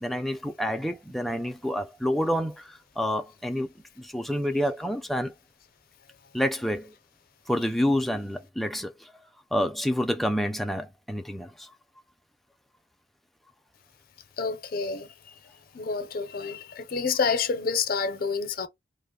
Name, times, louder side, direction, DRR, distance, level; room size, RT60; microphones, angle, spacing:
voice 1, 0.0-3.7 4.0-5.3 6.3-6.9 7.5-9.1 9.5-11.7, equal, ahead, 0.4 m, -28 dB
voice 2, 14.4-15.1 15.7-18.7, left 5 dB, 50° left, 0.6 m, -28 dB
3.1 x 2.1 x 3.6 m
head